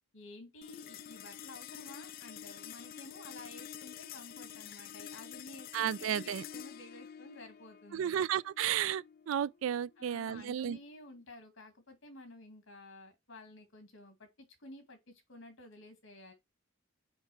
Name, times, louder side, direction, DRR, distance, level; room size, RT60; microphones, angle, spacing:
voice 1, 0.1-8.2 10.0-16.3, left 2 dB, 70° left, 2.1 m, -52 dB
sound 1, 0.6-11.2, left 9 dB, 45° left, 0.4 m, -49 dB
voice 2, 5.7-6.4 7.9-10.8, right 9 dB, 75° right, 0.3 m, -33 dB
4.7 x 4.5 x 4.7 m
head